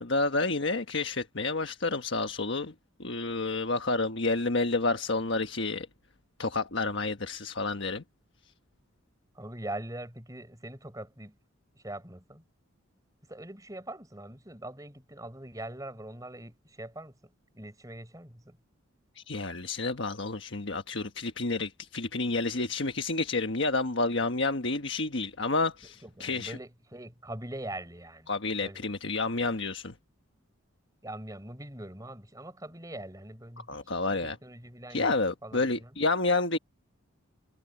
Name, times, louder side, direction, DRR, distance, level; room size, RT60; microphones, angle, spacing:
voice 1, 0.0-2.7 3.0-5.9 6.4-8.0 19.1-26.6 28.3-29.9 33.7-34.4 34.9-36.6, left 3 dB, 55° left, 1.4 m, -29 dB
voice 2, 9.3-11.3 11.8-12.4 13.3-17.2 17.5-18.6 26.0-28.3 28.6-28.9 31.0-36.0, right 1 dB, 15° right, 4.6 m, -42 dB
head